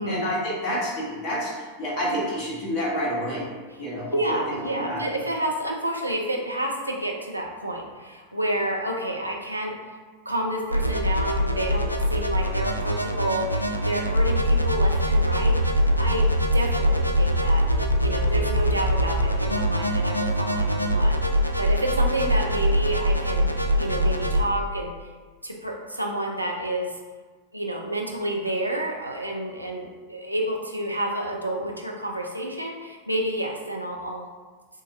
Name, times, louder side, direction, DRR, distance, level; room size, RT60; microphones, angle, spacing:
voice 1, 0.0-3.5 3.8-5.1, equal, 35° left, -5 dB, 1.5 m, -29 dB
voice 2, 4.1-9.7 10.3-17.6 18.0-24.9 25.4-26.9 27.5-34.3, right 1 dB, 85° right, 0 dB, 0.6 m, -29 dB
sound 1, 10.7-24.4, equal, 85° left, 0.4 m, -23 dB
6.3 x 2.6 x 2.8 m, 1.4 s
figure-of-eight pair, 90°, 0 cm